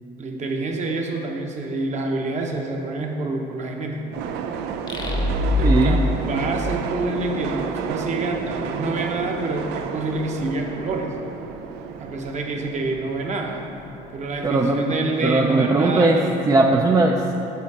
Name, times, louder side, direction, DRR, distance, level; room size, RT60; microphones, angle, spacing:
voice 1, 0.2-4.2 5.6-11.1 12.0-13.6 14.1-16.3, right 2 dB, 45° right, 1 dB, 0.9 m, -27 dB
sound 1, 4.1-14.8, right 7 dB, 90° right, 0.4 m, -32 dB
sound 2, 4.9-7.5, left 2 dB, 25° left, 0.8 m, -23 dB
voice 2, 5.6-6.0 14.4-14.9 15.2-16.2 16.5-17.3, right 2 dB, 20° right, 1 dB, 0.4 m, -18 dB
8.2 x 4.4 x 4.8 m, 2.9 s
cardioid pair, 110°, 17 cm